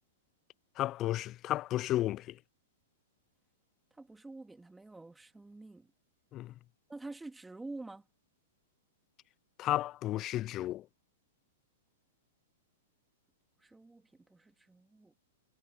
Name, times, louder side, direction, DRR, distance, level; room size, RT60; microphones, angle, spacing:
voice 1, 0.8-2.4 6.3-6.5 9.6-10.9, left 14 dB, 35° left, 0.3 m, -33 dB
voice 2, 4.0-5.9 6.9-8.0 13.6-15.1, right 2 dB, 5° right, 3.3 m, -48 dB
hypercardioid pair, 115°, 0 cm